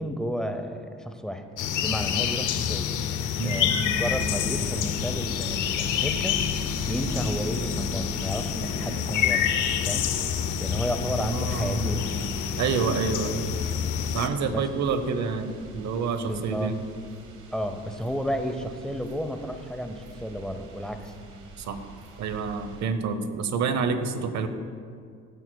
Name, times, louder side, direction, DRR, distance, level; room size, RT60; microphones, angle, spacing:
voice 1, 0.0-1.4 1.8-2.9 3.4-6.4 6.8-9.5 9.9-10.1 10.6-12.1 14.5-14.7 16.2-16.7 17.5-21.1, equal, ahead, 7 dB, 0.7 m, -32 dB
sound 1, 1.6-14.3, left 8 dB, 80° left, 0.7 m, -27 dB
sound 2, 4.0-22.8, right 4 dB, 80° right, 1.3 m, -44 dB
voice 2, 11.2-12.0 12.6-13.6 14.1-16.8 21.6-21.8 22.2-24.5, right 5 dB, 65° right, 9 dB, 0.8 m, -28 dB
15.0 x 9.0 x 2.3 m, 2.2 s
cardioid pair, 90°, 30 cm